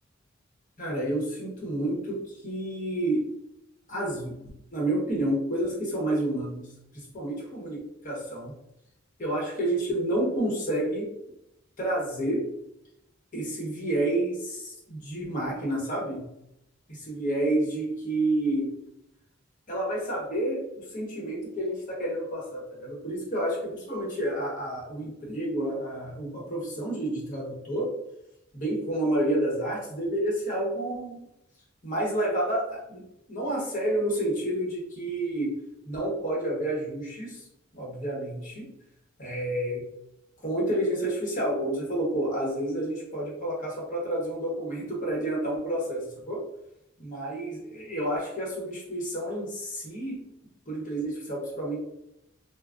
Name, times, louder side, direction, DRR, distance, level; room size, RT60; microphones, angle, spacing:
voice 1, 0.8-3.3 3.9-4.4 4.7-8.6 9.2-11.1 11.8-12.5 13.3-16.3 17.1-18.7 19.7-28.0 28.5-31.2 31.8-33.0 33.3-35.6 35.8-37.4 37.7-38.7 39.2-39.9 40.4-46.4 47.0-50.2 50.7-51.8, right 1 dB, 45° left, -3 dB, 1.0 m, -29 dB
2.4 x 2.2 x 3.4 m, 0.81 s
head